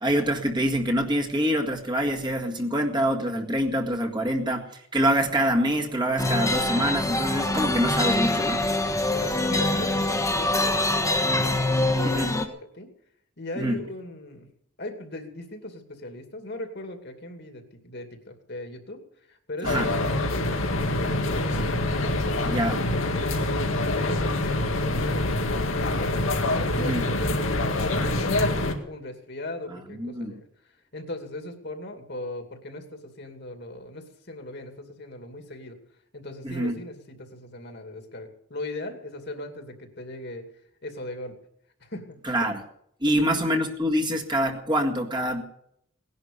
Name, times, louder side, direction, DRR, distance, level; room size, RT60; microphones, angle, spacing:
voice 1, 0.0-8.6 12.0-12.4 13.6-13.8 19.6-19.9 22.5-22.8 26.8-27.0 29.7-30.3 36.4-36.8 42.2-42.6 43.0-45.4, equal, 20° right, 1 dB, 1.8 m, -25 dB
sound 1, 6.2-12.5, left 2 dB, 15° left, 1.4 m, -24 dB
voice 2, 9.0-12.4 12.7-12.9 13.4-14.5 14.8-19.0 19.3-21.8 22.3-26.2 26.5-30.5 30.9-35.8 36.1-40.5 40.8-41.4 41.8-42.2 43.1-43.3, left 1 dB, 55° left, 5 dB, 2.6 m, -39 dB
sound 2, 19.6-28.7, left 2 dB, 80° left, 2.1 m, -25 dB
18.5 x 11.0 x 6.8 m, 0.70 s
head